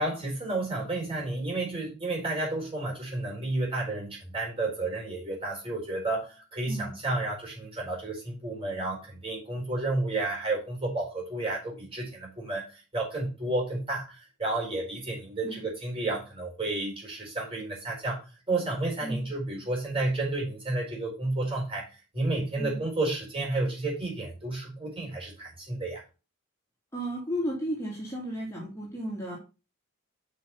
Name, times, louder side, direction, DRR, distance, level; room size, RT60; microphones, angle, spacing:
voice 1, 0.0-21.9 22.1-26.0, right 2 dB, 25° right, -2 dB, 4.5 m, -31 dB
voice 2, 26.9-29.4, equal, 15° left, -4 dB, 2.4 m, -34 dB
6.2 x 5.6 x 5.7 m, 0.31 s
head